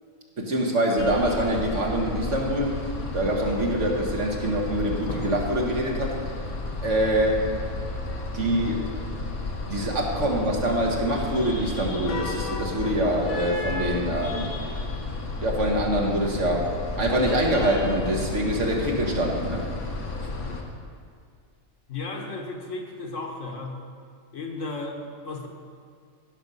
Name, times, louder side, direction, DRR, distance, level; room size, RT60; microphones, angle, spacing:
voice 1, 0.4-2.8 3.1-6.2 6.8-7.4 8.3-8.9 9.7-14.5 15.4-19.6, right 1 dB, 60° right, -1 dB, 1.8 m, -25 dB
sound 1, 1.0-20.6, left 3 dB, 80° left, 1.7 m, -32 dB
voice 2, 21.9-23.8 24.3-25.5, left 3 dB, 60° left, 2 dB, 1.5 m, -34 dB
16.0 x 6.2 x 5.5 m, 2.1 s
omnidirectional pair, 1.5 m